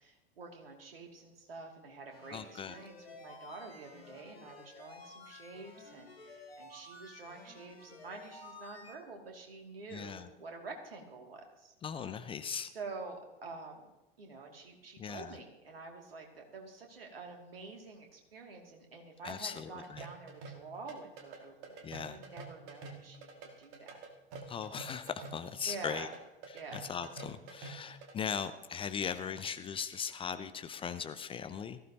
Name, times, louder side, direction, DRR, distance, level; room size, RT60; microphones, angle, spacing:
voice 1, 0.0-11.7 12.7-13.9 14.2-24.0 25.6-26.1 26.5-26.8, right 3 dB, 70° right, 2 dB, 2.7 m, -48 dB
sound 1, 2.1-8.9, left 2 dB, 75° left, 2.7 m, -53 dB
voice 2, 2.3-2.8 9.9-10.3 11.8-12.7 15.0-15.4 19.2-20.0 21.8-22.2 24.5-26.1 26.5-31.8, left 7 dB, 20° left, 11 dB, 0.6 m, -39 dB
sound 2, 19.8-28.1, right 4 dB, 45° right, 2.3 m, -48 dB
18.0 x 15.0 x 2.9 m, 1.1 s
figure-of-eight pair, 85°, 30 cm